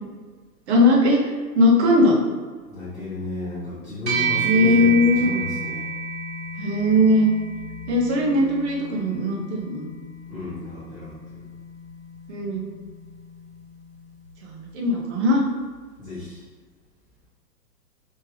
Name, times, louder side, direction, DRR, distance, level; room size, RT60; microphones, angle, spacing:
voice 1, 0.7-2.2 4.4-5.3 6.6-7.3 7.9-9.9 12.3-12.7 14.4-15.4, left 1 dB, 40° right, -2 dB, 1.0 m, -19 dB
voice 2, 2.7-5.9 10.3-11.4 16.0-16.4, left 2 dB, ahead, -17 dB, 1.4 m, -33 dB
sound 1, 4.1-13.7, right 4 dB, 80° right, 1.5 m, -31 dB
3.3 x 3.3 x 3.1 m, 1.5 s
hypercardioid pair, 125°, 49 cm